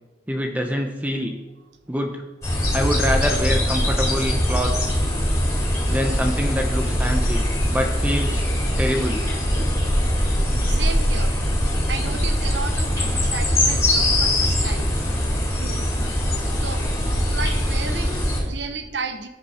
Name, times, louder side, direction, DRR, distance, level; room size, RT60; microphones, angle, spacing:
voice 1, 0.3-1.4 1.9-2.2 2.7-5.0 5.9-7.4 7.7-8.4 8.8-9.2, equal, 10° right, 4 dB, 0.7 m, -25 dB
sound 1, 2.4-18.4, left 1 dB, 20° left, 4.4 m, -22 dB
voice 2, 10.6-14.9 15.5-15.8 16.5-16.9 17.2-19.3, right 4 dB, 80° right, 8 dB, 1.0 m, -33 dB
10.0 x 10.0 x 4.3 m, 1.1 s
head